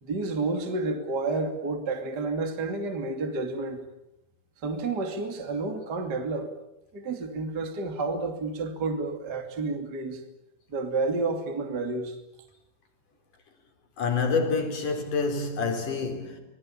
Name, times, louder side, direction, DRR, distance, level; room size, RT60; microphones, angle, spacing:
voice 1, 0.0-3.8 4.6-6.5 6.9-10.2 10.7-12.2, right 3 dB, 30° right, 2.9 m, -30 dB
voice 2, 14.0-16.4, left 4 dB, 70° left, 5.5 m, -27 dB
27.0 x 20.5 x 8.8 m
omnidirectional pair, 3.9 m